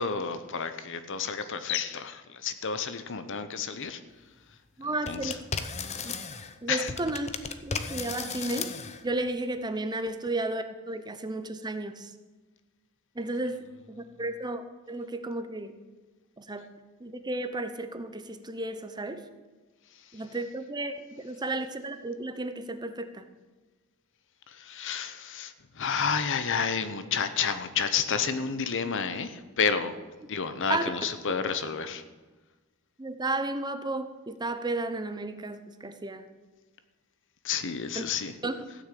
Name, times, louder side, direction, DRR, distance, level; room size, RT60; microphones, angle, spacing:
voice 1, 0.0-4.0 4.8-5.4 6.7-6.9 24.5-29.9 30.3-32.0 37.4-38.3, left 6 dB, 60° left, 11 dB, 0.9 m, -30 dB
voice 2, 4.8-5.4 6.1-6.2 6.6-7.3 7.6-8.7 9.0-12.1 13.2-13.6 13.9-15.7 16.4-16.6 17.0-19.2 20.1-23.2 30.7-30.8 33.0-36.2 38.0-38.1 38.4-38.6, right 2 dB, 20° right, 9 dB, 0.7 m, -33 dB
sound 1, 5.1-6.6 6.9-9.0, left 5 dB, 30° left, 0.7 m, -35 dB
15.0 x 6.4 x 8.4 m, 1.3 s
head